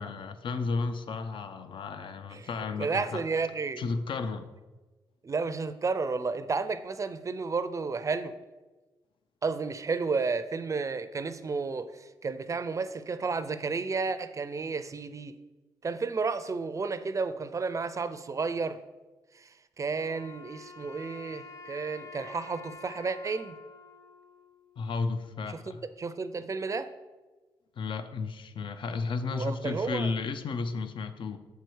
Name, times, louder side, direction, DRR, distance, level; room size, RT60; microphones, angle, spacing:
voice 1, 0.0-3.2 3.8-4.5 24.8-25.8 27.8-31.4, left 4 dB, 60° left, 10 dB, 0.5 m, -33 dB
voice 2, 2.8-3.8 5.2-8.3 9.4-15.3 15.8-18.8 19.4-19.5 19.8-23.5 25.7-26.9 29.3-30.1, right 4 dB, 35° right, 12 dB, 0.4 m, -32 dB
Wind instrument woodwind instrument, 19.9-25.1, left 3 dB, 35° left, 0.9 m, -48 dB
6.9 x 4.6 x 4.6 m, 1.2 s
cardioid pair, 80°, 10 cm